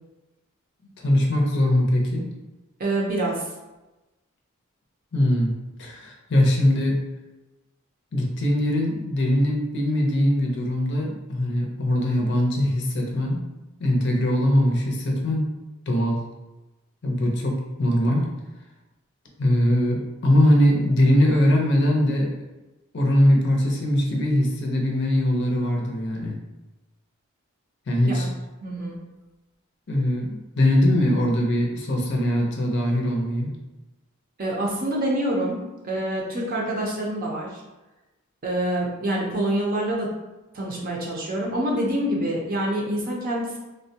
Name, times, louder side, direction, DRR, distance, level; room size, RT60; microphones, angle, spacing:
voice 1, 1.0-2.3 5.1-5.5 5.8-7.0 8.1-13.4 13.8-15.5 15.9-16.2 17.0-18.3 19.4-22.3 22.9-26.4 27.9-28.3 29.9-33.5, left 1 dB, 55° left, -1 dB, 0.5 m, -21 dB
voice 2, 2.8-3.4 28.0-28.3 28.6-29.0 34.4-37.6 38.4-40.1 40.5-43.6, right 1 dB, 40° right, -2 dB, 0.5 m, -26 dB
3.4 x 2.1 x 2.7 m, 1.1 s
head